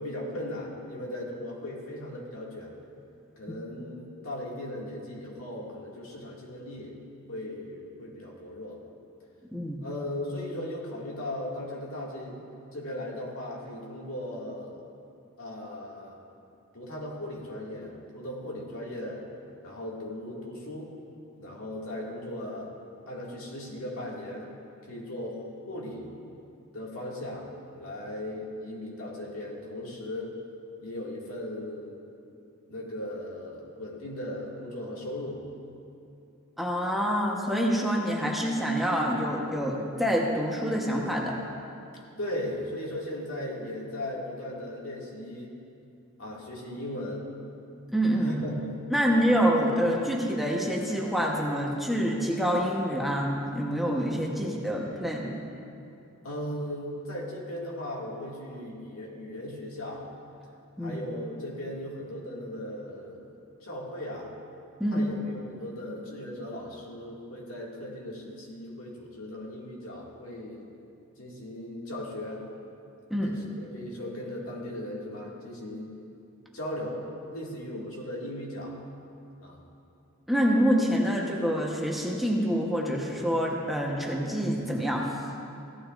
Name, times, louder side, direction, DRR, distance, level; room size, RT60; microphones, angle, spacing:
voice 1, 0.0-2.8 3.4-7.0 7.3-8.8 9.8-12.4 12.7-14.8 15.4-16.2 16.7-19.2 19.6-20.9 21.3-22.7 23.1-24.5 24.9-26.1 26.7-27.5 27.8-30.3 30.8-32.0 32.7-35.5 42.2-45.5 46.2-47.3 48.2-48.7 56.2-60.1 60.8-63.3 63.6-64.3 64.9-70.6 71.2-72.4 73.2-75.9 76.5-78.8 79.4-79.6, left 1 dB, 80° left, -3 dB, 2.1 m, -37 dB
voice 2, 36.6-41.4 47.9-48.3 48.9-55.3 60.8-61.0 64.8-65.0 73.1-73.3 80.3-85.1, equal, ahead, -3 dB, 1.0 m, -26 dB
16.0 x 12.0 x 2.5 m, 2.6 s
head